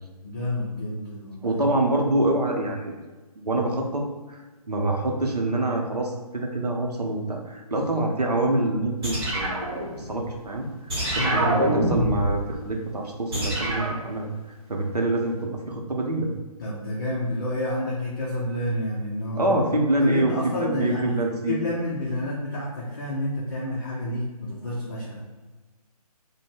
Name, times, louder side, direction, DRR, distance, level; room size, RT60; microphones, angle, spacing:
voice 1, 0.2-1.6 11.1-11.6 16.6-19.6 20.0-25.2, left 1 dB, 30° left, -6 dB, 0.4 m, -29 dB
voice 2, 1.4-2.9 3.4-4.4 4.7-9.5 10.0-10.7 11.2-14.3 14.7-16.3 19.4-21.6, right 2 dB, 80° right, 1 dB, 0.6 m, -25 dB
sound 1, 9.0-10.4 10.9-12.4 13.3-14.0, right 1 dB, 40° right, 1.0 m, -25 dB
2.5 x 2.0 x 3.3 m, 1.2 s
figure-of-eight pair, 145°, 20 cm